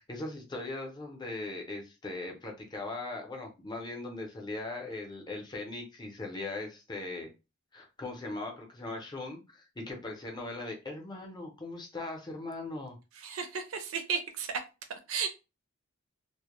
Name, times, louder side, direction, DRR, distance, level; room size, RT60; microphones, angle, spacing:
voice 1, 0.0-7.3 7.7-13.0, left 2 dB, 20° left, 0.6 m, -39 dB
voice 2, 13.2-14.6 14.9-15.3, right 6 dB, 80° right, 0.5 m, -34 dB
2.1 x 2.1 x 2.9 m
head